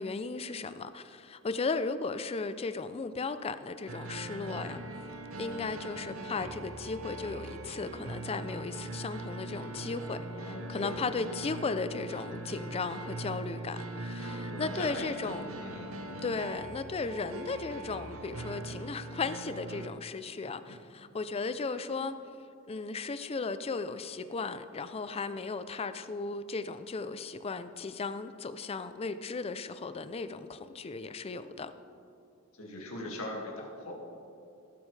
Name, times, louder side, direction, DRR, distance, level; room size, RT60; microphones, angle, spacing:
voice 1, 0.0-4.8 5.4-15.4 16.2-22.1 22.7-31.7, left 4 dB, 30° left, 12 dB, 0.4 m, -36 dB
sound 1, 3.9-19.9, right 2 dB, 75° right, 0.8 m, -41 dB
voice 2, 10.2-10.9 14.5-15.1 15.6-15.9 20.4-20.8 32.5-33.9, left 1 dB, 80° left, -1 dB, 2.1 m, -41 dB
17.5 x 8.2 x 3.3 m, 2.6 s
head